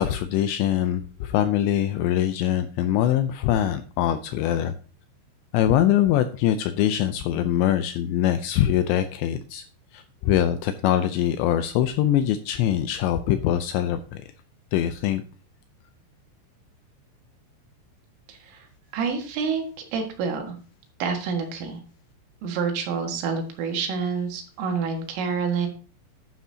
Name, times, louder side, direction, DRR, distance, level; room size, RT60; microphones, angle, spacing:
voice 1, 0.0-4.7 5.5-9.6 9.9-14.2 14.7-15.2, left 11 dB, 85° left, 10 dB, 2.6 m, -23 dB
voice 2, 18.3-18.7 18.9-19.7 19.9-20.6 21.0-21.8 22.4-25.7, right 5 dB, 85° right, 3 dB, 4.3 m, -28 dB
11.5 x 9.8 x 2.8 m, 0.36 s
omnidirectional pair, 5.7 m